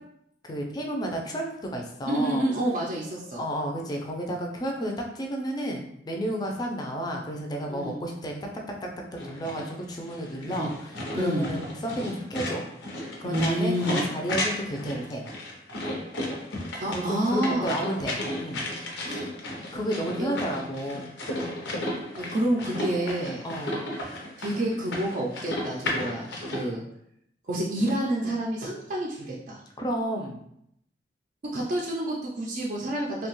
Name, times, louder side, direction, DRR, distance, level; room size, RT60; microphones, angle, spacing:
voice 1, 0.4-1.5 1.7-2.4 3.4-8.4 8.7-12.7 13.2-15.3 16.9-18.6 19.7-21.1 23.4-23.8 29.8-30.4, equal, 25° left, 1 dB, 0.4 m, -31 dB
voice 2, 2.1-3.4 7.7-8.0 10.4-10.7 11.1-11.4 13.2-14.0 16.8-17.7 19.0-19.3 20.2-20.3 22.2-23.4 24.4-26.8 27.5-29.6 31.5-33.3, right 1 dB, 45° right, -4 dB, 0.4 m, -28 dB
sound 1, 9.2-26.6, left 1 dB, 90° left, 0.6 m, -34 dB
2.7 x 2.2 x 3.0 m, 0.74 s
head